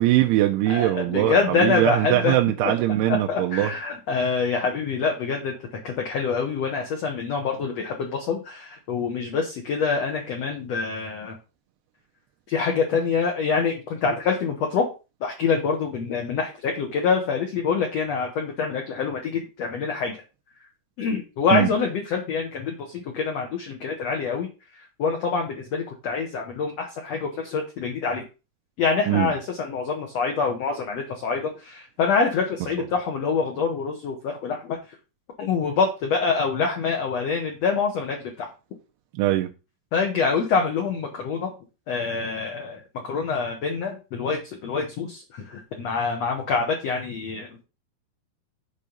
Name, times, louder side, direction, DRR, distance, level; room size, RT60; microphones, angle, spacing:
voice 1, 0.0-3.7 21.5-21.7 29.1-29.3 39.2-39.5, right 14 dB, 85° right, 2.7 m, -21 dB
voice 2, 0.7-2.3 2.6-2.7 3.1-5.5 5.8-11.4 12.5-14.9 15.2-20.2 21.0-24.5 25.0-28.2 28.8-34.8 35.4-38.5 39.9-41.5 41.9-47.6, left 5 dB, 65° left, 1.7 m, -26 dB
8.4 x 3.6 x 6.6 m
omnidirectional pair, 4.8 m